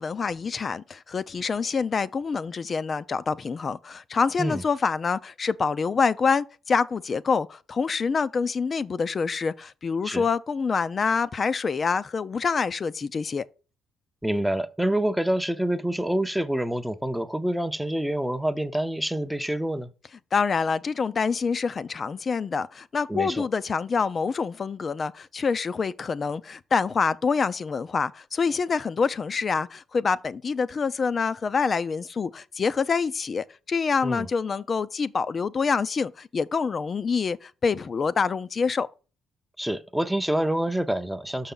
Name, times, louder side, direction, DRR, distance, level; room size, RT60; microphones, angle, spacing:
voice 1, 0.0-13.4 20.3-38.9, left 5 dB, 40° left, 0.5 m, -26 dB
voice 2, 14.2-19.9 23.1-23.4 34.0-34.3 39.6-41.5, right 1 dB, 5° right, 0.6 m, -27 dB
6.1 x 5.6 x 3.8 m
cardioid pair, 90°, 0 cm